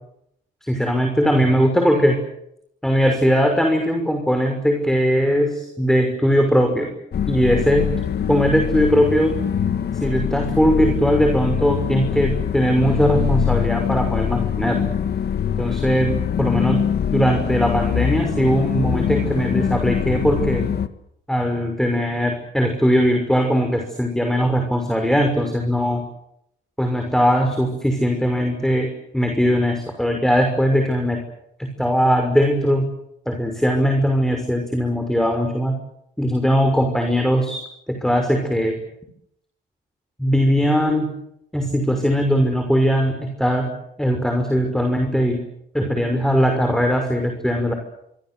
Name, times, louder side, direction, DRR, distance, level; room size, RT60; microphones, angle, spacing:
voice 1, 0.7-2.2 2.8-6.9 7.3-7.9 8.3-9.4 10.0-14.9 15.6-16.8 17.1-20.7 21.3-26.0 26.8-31.2 31.6-32.9 33.3-35.8 36.2-37.6 37.9-38.8 40.2-41.1 41.5-43.7 44.0-45.4 45.7-47.7, equal, ahead, 4 dB, 6.1 m, -20 dB
sound 1, 7.1-20.9, left 8 dB, 55° left, 1.9 m, -23 dB
26.5 x 24.0 x 8.0 m, 0.78 s
cardioid pair, 90°, 20 cm